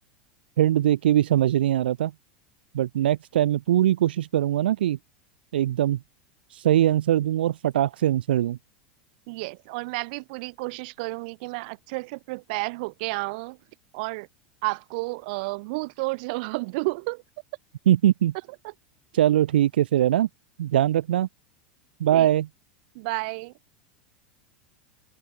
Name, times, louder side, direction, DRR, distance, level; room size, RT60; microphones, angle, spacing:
voice 1, 0.6-2.1 2.7-5.0 5.5-6.0 6.5-8.6 17.8-18.3 19.1-20.3 20.6-21.3 22.0-22.5, right 12 dB, 80° right, 1.6 m, -21 dB
voice 2, 9.3-13.6 13.9-14.3 14.6-17.2 22.1-22.3 22.9-23.5, right 26 dB, 65° right, 2.6 m, -31 dB
hypercardioid pair, 95°, 5 cm